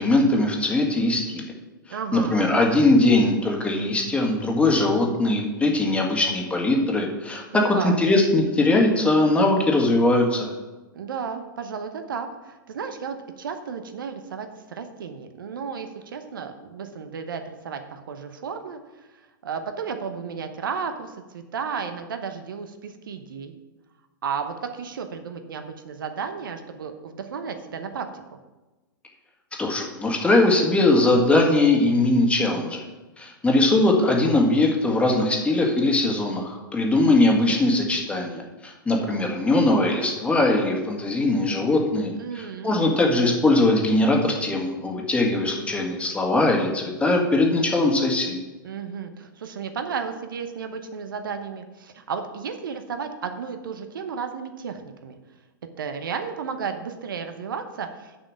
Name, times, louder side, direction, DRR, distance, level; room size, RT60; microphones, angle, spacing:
voice 1, 0.0-1.4 2.1-10.5 29.6-32.8 33.2-48.4, left 2 dB, 10° left, 1 dB, 1.7 m, -21 dB
voice 2, 1.9-2.5 7.5-8.0 10.9-19.1 19.4-23.5 24.2-28.1 42.2-42.9 48.6-55.1 55.8-58.2, right 6 dB, 70° right, 7 dB, 1.0 m, -33 dB
6.9 x 5.7 x 7.5 m, 1.2 s
hypercardioid pair, 105°, 12 cm